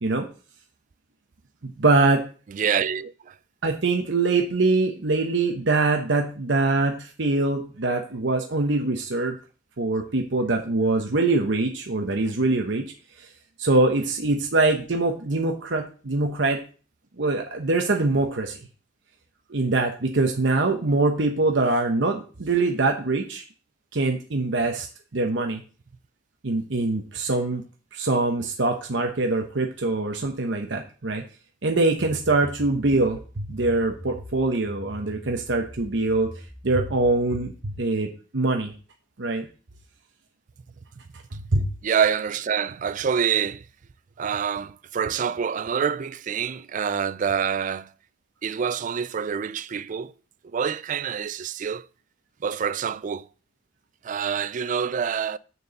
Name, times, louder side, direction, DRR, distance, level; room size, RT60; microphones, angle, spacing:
voice 1, 1.6-2.2 3.6-9.4 9.8-12.9 13.6-16.6 17.2-18.6 19.5-23.4 23.9-24.9 25.1-25.6 26.4-27.6 27.9-31.2 31.6-36.3 36.6-38.7 39.2-39.5 41.5-41.7, right 2 dB, 65° right, 0.9 m, -23 dB
voice 2, 2.5-3.4 41.8-43.6 44.2-47.9 48.4-50.1 50.5-51.9 52.4-53.3 54.0-55.4, right 7 dB, 40° right, 0.3 m, -26 dB
sound 1, 32.0-37.2, equal, 45° left, 2.8 m, -43 dB
6.7 x 4.6 x 6.6 m
head